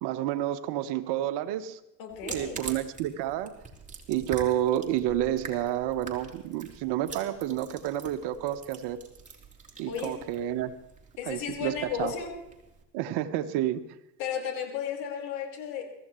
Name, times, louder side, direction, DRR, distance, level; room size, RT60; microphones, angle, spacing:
voice 1, 0.0-1.8 2.2-3.5 4.1-9.0 9.8-10.7 11.2-11.7 12.0-12.1 12.9-13.8, right 12 dB, 55° right, 11 dB, 1.2 m, -29 dB
voice 2, 2.0-2.6 9.8-10.2 11.2-12.3 14.2-16.0, left 8 dB, 60° left, 1 dB, 4.6 m, -34 dB
sound 1, 2.1-12.8, right 4 dB, 15° right, 3.7 m, -45 dB
24.0 x 15.0 x 3.1 m, 0.89 s
hypercardioid pair, 75°, 49 cm